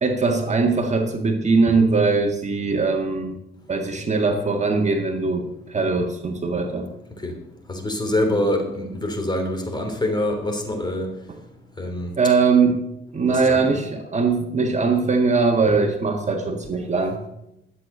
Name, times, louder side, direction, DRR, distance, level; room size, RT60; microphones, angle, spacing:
voice 1, 0.0-3.4 3.7-6.9 12.2-12.9 13.1-17.2, right 4 dB, 35° right, 1.8 m, -21 dB
voice 2, 7.7-11.2 11.8-12.1 13.3-13.7, left 1 dB, 20° left, 3.2 m, -25 dB
12.0 x 8.3 x 6.7 m
cardioid pair, 90°, 20 cm